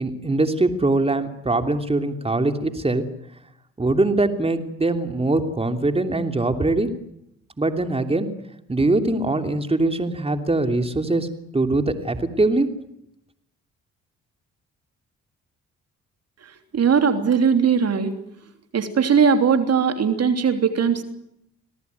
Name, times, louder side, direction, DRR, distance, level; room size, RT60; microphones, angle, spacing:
voice 1, 0.0-3.0 3.8-6.9 7.6-8.3 8.7-11.3 11.5-12.7, right 2 dB, 20° right, 7 dB, 3.1 m, -22 dB
voice 2, 16.7-18.1 18.7-21.0, right 6 dB, 55° right, 7 dB, 3.2 m, -19 dB
26.5 x 18.0 x 9.5 m, 0.77 s
supercardioid pair, 65°, 31 cm